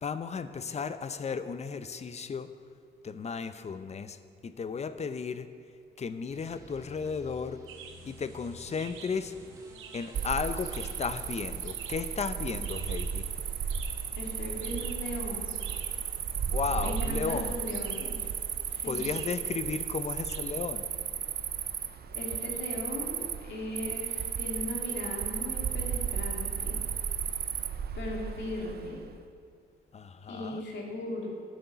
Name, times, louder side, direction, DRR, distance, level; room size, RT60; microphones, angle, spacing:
voice 1, 0.0-2.5 3.0-5.5 6.0-7.6 8.1-9.3 9.9-13.3 16.5-17.5 18.8-20.8 29.9-30.6, left 5 dB, 35° left, 12 dB, 0.6 m, -34 dB
sound 1, 6.3-18.4 18.7-19.3 19.6-20.2 20.5-20.8 21.1-21.2 21.4-21.5, equal, 15° right, 2.0 m, -56 dB
sound 2, 7.7-20.4, right 7 dB, 90° right, 0.9 m, -51 dB
Cricket, 10.1-29.1, right 7 dB, 55° right, 0.7 m, -34 dB
voice 2, 14.1-15.5 16.8-18.3 18.7-19.2 22.1-26.8 27.9-29.0 30.3-31.3, left 2 dB, 65° left, -1 dB, 2.8 m, -38 dB
12.5 x 6.5 x 7.0 m, 2.2 s
cardioid pair, 90°, 20 cm